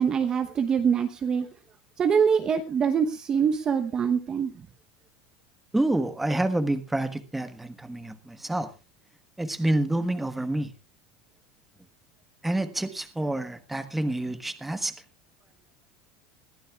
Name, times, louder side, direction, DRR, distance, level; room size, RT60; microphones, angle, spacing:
voice 1, 0.0-1.5 2.0-4.7, right 7 dB, 25° right, 1.0 m, -24 dB
voice 2, 5.7-8.7 9.4-10.7 12.4-14.9, right 1 dB, 5° right, 1.3 m, -28 dB
21.0 x 14.0 x 2.4 m
supercardioid pair, 145°, 3 cm